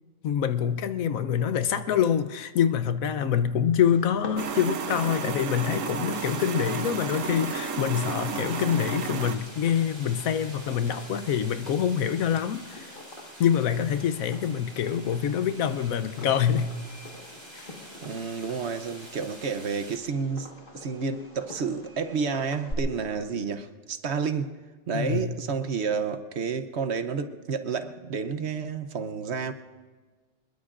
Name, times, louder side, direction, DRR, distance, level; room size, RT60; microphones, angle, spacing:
voice 1, 0.2-13.0 13.4-16.7 17.5-17.7 24.9-25.4, left 8 dB, 90° left, 11 dB, 1.2 m, -26 dB
Fireworks, 3.7-22.7, left 2 dB, 40° left, 1.8 m, -47 dB
sound 1, 4.4-9.4, right 6 dB, 75° right, 1.2 m, -32 dB
sound 2, 6.1-20.0, right 1 dB, 20° right, 3.7 m, -47 dB
voice 2, 18.0-24.5 24.9-29.5, right 5 dB, 60° right, 10 dB, 1.0 m, -30 dB
24.5 x 21.0 x 2.5 m, 1.3 s
omnidirectional pair, 1.4 m